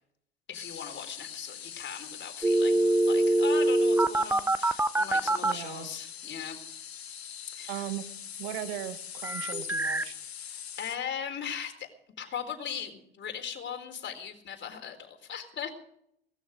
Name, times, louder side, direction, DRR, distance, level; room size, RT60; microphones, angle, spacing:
sound 1, 0.5-11.0, left 9 dB, 85° left, 1.9 m, -42 dB
voice 1, 0.5-6.6 7.5-7.8 10.5-11.9 12.2-15.7, left 8 dB, 35° left, 5 dB, 4.1 m, -39 dB
sound 2, 2.4-5.5 9.2-10.1, right 1 dB, 5° right, 0.7 m, -24 dB
voice 2, 5.4-5.9 7.7-8.0 8.4-10.1, right 14 dB, 65° right, 11 dB, 1.6 m, -37 dB
19.0 x 13.5 x 5.2 m, 0.70 s
hypercardioid pair, 70°, 31 cm